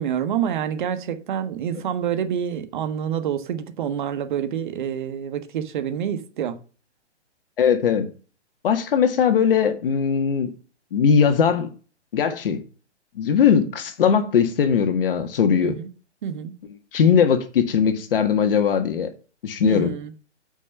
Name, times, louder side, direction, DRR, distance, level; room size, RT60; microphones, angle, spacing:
voice 1, 0.0-6.6 15.5-15.9 16.2-16.5 19.6-20.1, right 9 dB, 45° right, 1.4 m, -27 dB
voice 2, 7.6-8.1 8.6-10.5 10.9-11.7 12.1-12.6 13.2-15.8 16.9-19.1 19.4-19.9, left 7 dB, 50° left, 1.7 m, -19 dB
8.4 x 5.5 x 5.5 m
figure-of-eight pair, 135°, 35 cm